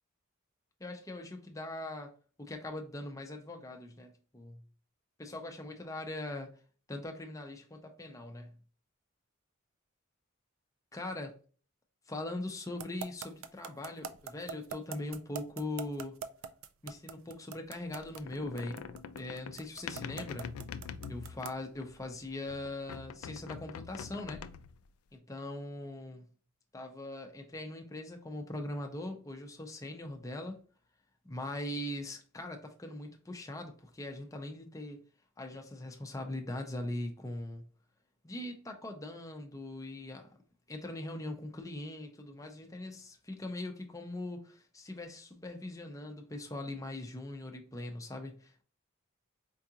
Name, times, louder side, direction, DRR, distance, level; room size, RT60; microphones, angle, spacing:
voice 1, 0.8-2.1 2.4-4.6 5.2-6.5 6.9-8.6 10.9-11.3 12.1-16.2 16.8-18.8 19.1-20.5 21.1-24.4 25.1-26.3 26.7-30.6 31.2-35.0 35.4-37.6 38.2-40.4 40.7-48.6, left 1 dB, 15° left, 0.6 m, -41 dB
sound 1, 12.8-21.7, right 6 dB, 70° right, 0.4 m, -42 dB
sound 2, 17.9-22.1 22.5-24.9, left 7 dB, 85° left, 0.3 m, -44 dB
4.6 x 2.4 x 2.8 m
head